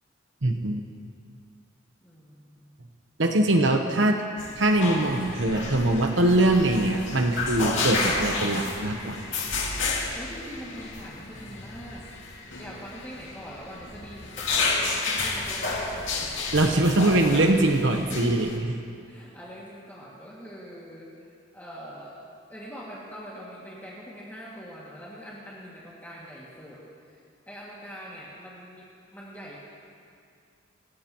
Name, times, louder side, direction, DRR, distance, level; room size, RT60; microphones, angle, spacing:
voice 1, 0.4-0.8 3.2-4.2 4.6-9.2 16.5-18.7, right 1 dB, 70° right, 4 dB, 1.0 m, -22 dB
voice 2, 2.0-2.7 10.1-16.5 19.0-22.2 22.5-26.8 27.1-29.6, equal, 10° left, -7 dB, 2.2 m, -43 dB
sound 1, 4.4-18.6, left 3 dB, 75° left, 2.2 m, -31 dB
27.0 x 14.5 x 3.0 m, 2.4 s
head